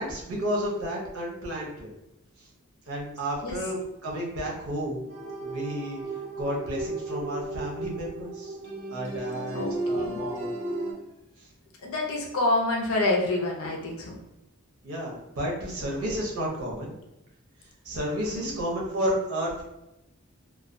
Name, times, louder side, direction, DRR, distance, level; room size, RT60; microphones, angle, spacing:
voice 1, 0.0-1.9 2.9-5.0 5.4-6.0 6.4-8.6 8.9-10.5 14.8-17.0 17.8-19.6, equal, 85° right, -2 dB, 0.8 m, -31 dB
sound 1, 5.1-10.9, right 2 dB, 35° right, 0.6 m, -34 dB
voice 2, 9.5-10.2 11.8-14.2 18.3-18.6, left 2 dB, 75° left, 0 dB, 0.6 m, -27 dB
2.3 x 2.3 x 2.5 m, 0.90 s
head